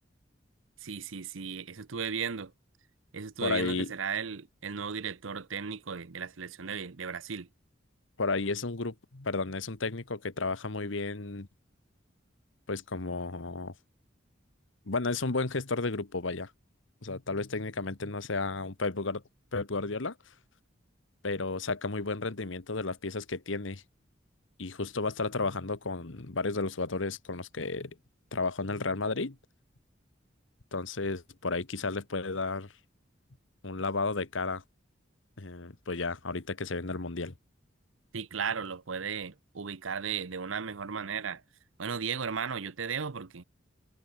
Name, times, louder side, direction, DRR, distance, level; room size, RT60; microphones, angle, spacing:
voice 1, 0.8-2.5 3.1-7.5 38.1-41.4 41.8-43.4, right 6 dB, 85° right, 0.9 m, -35 dB
voice 2, 3.4-3.9 8.2-11.5 12.7-13.7 14.9-16.5 17.0-19.2 19.5-20.1 21.2-23.8 24.6-27.9 28.3-29.4 30.7-32.7 33.6-34.6 35.4-37.3, left 3 dB, 80° left, 1.3 m, -32 dB
head